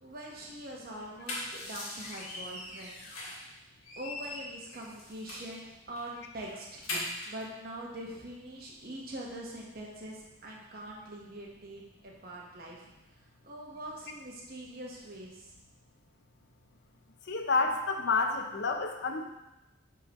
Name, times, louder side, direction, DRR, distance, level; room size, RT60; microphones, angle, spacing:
voice 1, 0.0-3.0 4.0-6.8 7.3-12.9 13.4-15.5, right 1 dB, 45° right, -2 dB, 1.1 m, -43 dB
sound 1, 1.0-3.5 3.8-5.6 6.0-6.1 6.4-7.4, left 2 dB, 75° left, 1.8 m, -40 dB
voice 2, 17.3-19.2, left 3 dB, 50° left, 4 dB, 0.6 m, -29 dB
8.5 x 3.8 x 2.9 m, 0.96 s
head